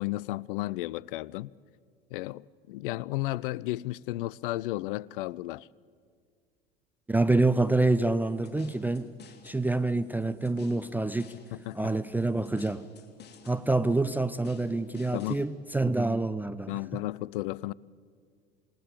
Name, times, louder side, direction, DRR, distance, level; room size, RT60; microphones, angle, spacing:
voice 1, 0.0-1.5 2.1-5.7 11.7-11.9 15.1-15.4 16.7-17.7, left 18 dB, 60° left, 0.5 m, -33 dB
voice 2, 7.1-9.1 9.4-11.3 11.7-12.9 13.5-16.8, right 2 dB, 5° right, 0.5 m, -27 dB
sound 1, 7.4-15.4, left 6 dB, 35° left, 2.9 m, -54 dB
27.5 x 19.5 x 7.1 m
figure-of-eight pair, 75°, 30 cm